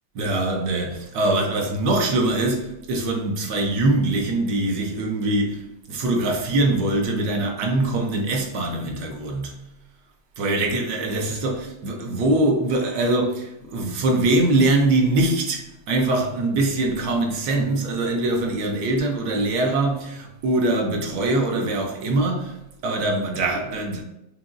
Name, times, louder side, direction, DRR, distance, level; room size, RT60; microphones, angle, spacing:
voice 1, 0.1-5.6 5.9-9.5 10.4-22.6 22.8-24.0, right 2 dB, 80° right, 1.4 m, -23 dB
5.1 x 2.9 x 2.5 m
omnidirectional pair, 1.8 m